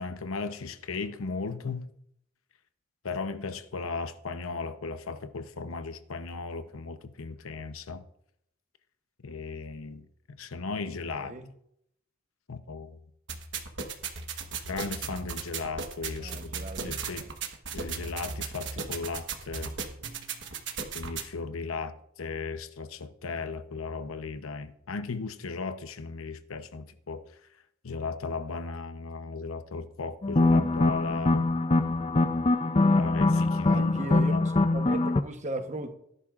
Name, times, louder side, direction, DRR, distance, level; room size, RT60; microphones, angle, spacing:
voice 1, 0.0-1.9 3.0-8.1 9.2-11.4 12.5-13.0 14.7-17.3 17.7-19.7 20.9-27.3 27.8-31.5 32.9-34.5, left 4 dB, 85° left, 0.8 m, -36 dB
voice 2, 11.2-11.5 16.2-16.9 33.6-34.4 34.7-36.0, right 2 dB, 35° right, 1.0 m, -37 dB
sound 1, 13.3-21.3, right 5 dB, 60° right, 1.2 m, -36 dB
sound 2, 30.2-35.2, left 2 dB, 25° left, 0.4 m, -23 dB
17.5 x 11.0 x 2.5 m
head